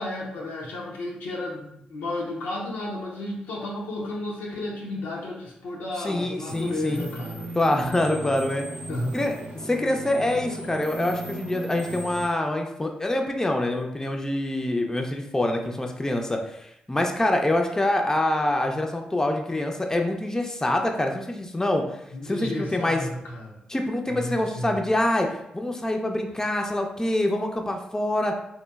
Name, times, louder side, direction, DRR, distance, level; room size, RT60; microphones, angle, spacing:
voice 1, 0.0-7.5 8.9-9.2 22.1-23.6 24.1-24.7, left 1 dB, 85° left, -3 dB, 0.5 m, -32 dB
voice 2, 6.0-7.1 7.5-8.6 9.1-9.4 9.6-21.8 22.2-23.0 23.7-25.3 25.5-28.3, left 1 dB, 15° left, 3 dB, 0.4 m, -25 dB
sound 1, 6.5-12.3, right 1 dB, 60° right, 0.6 m, -37 dB
2.9 x 2.2 x 2.2 m, 0.78 s
hypercardioid pair, 40°, 3 cm